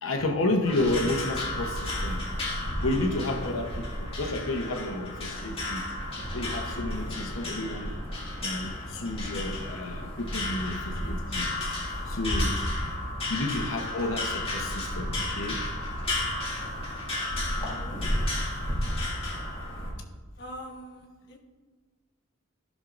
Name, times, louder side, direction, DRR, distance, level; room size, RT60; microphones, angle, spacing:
voice 1, 0.0-2.3 2.8-5.8 6.3-7.9 8.4-11.5 11.8-12.5 13.3-15.6, left 2 dB, 90° left, 1.0 m, -31 dB
sound 1, 0.6-19.9, left 1 dB, 30° left, 2.1 m, -32 dB
voice 2, 17.3-18.0 20.4-21.4, equal, 55° left, 1.5 m, -45 dB
14.5 x 6.3 x 2.6 m
head